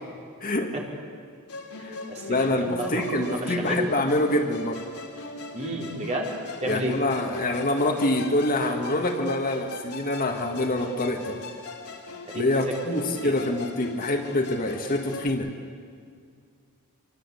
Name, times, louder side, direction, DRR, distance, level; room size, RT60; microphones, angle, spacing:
voice 1, 0.4-0.7 1.8-2.0 2.3-4.8 6.6-11.4 12.3-15.5, left 1 dB, 40° left, 4 dB, 2.0 m, -25 dB
Musical instrument, 1.5-15.3, left 2 dB, 80° left, 3.5 m, -40 dB
voice 2, 2.1-3.9 5.5-6.3 6.6-7.0 12.2-12.6 13.2-13.3, right 1 dB, 30° right, -1 dB, 4.5 m, -31 dB
26.5 x 24.5 x 8.5 m, 2.2 s
head